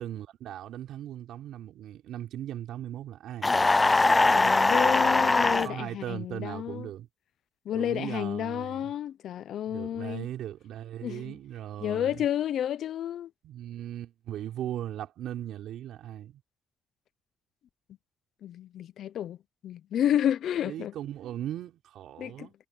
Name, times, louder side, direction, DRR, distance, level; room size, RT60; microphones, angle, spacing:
voice 1, 0.0-3.5 5.4-7.1 7.7-8.9 9.7-12.3 13.4-16.4 20.6-22.5, right 12 dB, 80° right, 4.6 m, -38 dB
sound 1, 3.4-5.7, left 3 dB, 20° left, 0.5 m, -21 dB
voice 2, 4.3-6.9 7.7-10.3 11.0-11.3 11.8-13.3 18.4-19.4 19.6-20.9 22.2-22.5, left 10 dB, 70° left, 0.6 m, -30 dB
cardioid pair, 90°, 0 cm